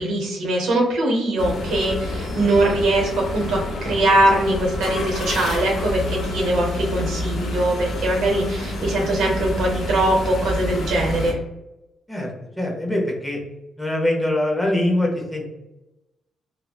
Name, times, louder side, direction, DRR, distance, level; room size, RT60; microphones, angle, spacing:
voice 1, 0.0-11.4, right 1 dB, 75° right, 0 dB, 0.8 m, -21 dB
sound 1, 1.4-11.3, left 1 dB, 55° left, 0.5 m, -28 dB
voice 2, 12.6-13.4 13.8-15.5, left 1 dB, 5° left, -1 dB, 0.7 m, -23 dB
2.9 x 2.0 x 2.3 m, 0.95 s
cardioid pair, 90°, 0 cm